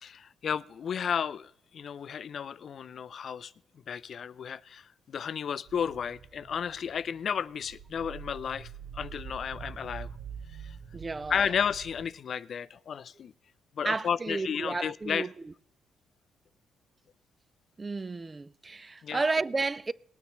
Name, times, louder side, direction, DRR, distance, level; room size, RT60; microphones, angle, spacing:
voice 1, 0.0-3.5 3.9-10.1 10.6-10.8 11.3-13.3 13.8-15.3 19.0-19.2, left 7 dB, 55° left, 0.4 m, -33 dB
sound 1, 5.7-12.1, right 7 dB, 60° right, 0.7 m, -45 dB
voice 2, 10.9-11.4 13.8-15.3 17.8-19.9, right 3 dB, 25° right, 0.3 m, -32 dB
19.0 x 9.3 x 3.0 m
cardioid pair, 90°, 0 cm